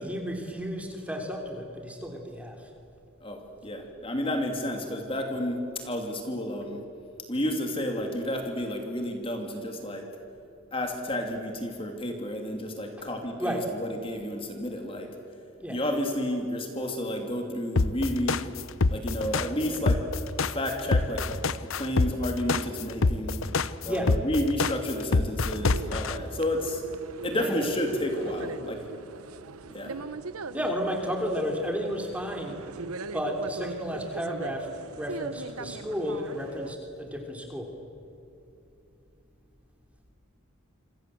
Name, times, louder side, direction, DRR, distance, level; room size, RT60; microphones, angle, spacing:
voice 1, 0.0-2.7 13.4-13.6 15.6-15.8 23.8-24.1 27.3-27.5 30.5-32.6 33.1-34.7 35.0-37.7, equal, 5° right, 2 dB, 3.2 m, -32 dB
voice 2, 3.2-6.8 7.3-10.0 10.7-15.1 15.7-18.5 18.9-20.0 20.4-23.5 23.8-26.8 27.2-28.8 29.7-30.0, left 1 dB, 25° left, 3 dB, 2.8 m, -31 dB
sound 1, 17.8-26.1, left 3 dB, 70° left, 0.9 m, -25 dB
sound 2, 25.5-36.7, right 3 dB, 90° right, 0.9 m, -41 dB
28.0 x 26.5 x 7.8 m, 2.7 s
head